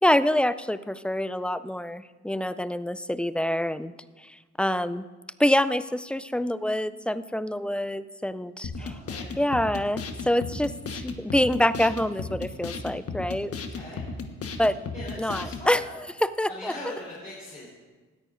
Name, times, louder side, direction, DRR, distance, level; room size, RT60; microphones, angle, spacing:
voice 1, 0.0-3.9 4.2-5.1 5.4-9.0 9.4-13.5 14.6-14.8 15.2-15.8 16.2-16.7, left 1 dB, 5° left, 14 dB, 0.3 m, -26 dB
sound 1, 8.6-15.7, left 4 dB, 50° left, 1.3 m, -35 dB
voice 2, 8.7-9.3 13.5-14.1 14.9-15.8 16.5-17.7, left 1 dB, 25° left, -7 dB, 3.9 m, -40 dB
19.0 x 13.5 x 2.6 m, 1.3 s
cardioid pair, 90°, 30 cm